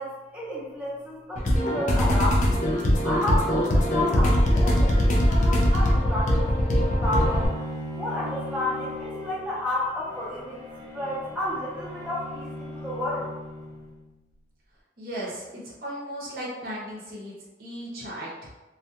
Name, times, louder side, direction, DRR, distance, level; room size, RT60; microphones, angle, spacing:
voice 1, 0.0-2.6 3.0-7.5 7.9-10.7 10.9-13.3, left 1 dB, 10° right, -7 dB, 0.7 m, -31 dB
sound 1, 1.4-7.5, equal, 45° left, 0.4 m, -21 dB
Bowed string instrument, 7.0-14.1, left 1 dB, 25° left, 0.9 m, -38 dB
voice 2, 15.0-17.3 17.6-18.5, equal, 55° right, -6 dB, 0.8 m, -36 dB
2.3 x 2.3 x 2.8 m, 1.1 s
head